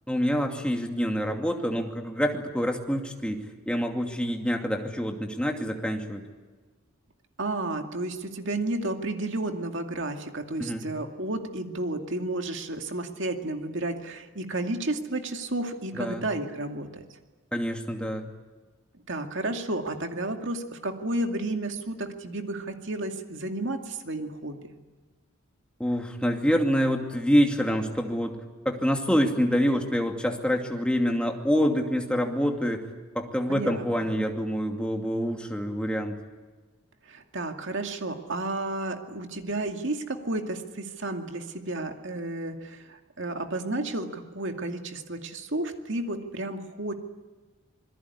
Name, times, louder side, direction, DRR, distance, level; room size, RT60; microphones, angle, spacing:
voice 1, 0.1-6.2 10.6-10.9 15.9-16.2 17.5-18.2 25.8-28.4 28.6-32.8 33.1-36.1, equal, 5° left, 2 dB, 2.5 m, -26 dB
voice 2, 7.4-17.0 19.1-24.7 33.5-33.8 34.1-34.2 37.1-46.9, right 2 dB, 55° right, 5 dB, 2.4 m, -32 dB
27.0 x 21.5 x 9.8 m, 1.3 s
head